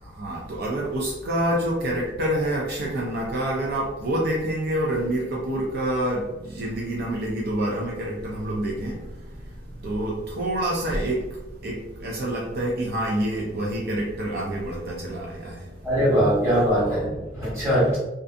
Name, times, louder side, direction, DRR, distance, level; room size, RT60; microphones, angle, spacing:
voice 1, 0.0-15.9, right 1 dB, 60° right, -3 dB, 0.4 m, -27 dB
voice 2, 15.8-18.0, equal, 15° right, -9 dB, 1.2 m, -21 dB
2.5 x 2.5 x 2.4 m, 1.1 s
head